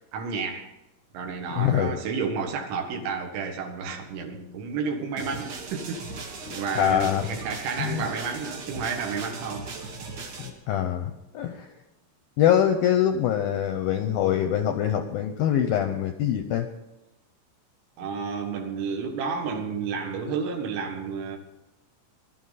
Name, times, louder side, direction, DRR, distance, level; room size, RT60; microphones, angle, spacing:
voice 1, 0.1-0.7 1.1-6.1 6.5-9.7 18.0-21.4, right 5 dB, 90° right, 4.1 m, -31 dB
voice 2, 1.5-1.9 6.8-7.2 7.8-8.0 10.4-11.7 12.4-16.7, left 10 dB, 80° left, 2.1 m, -24 dB
sound 1, 5.2-10.5, right 4 dB, 50° right, 2.7 m, -38 dB
21.0 x 12.5 x 4.1 m
omnidirectional pair, 5.2 m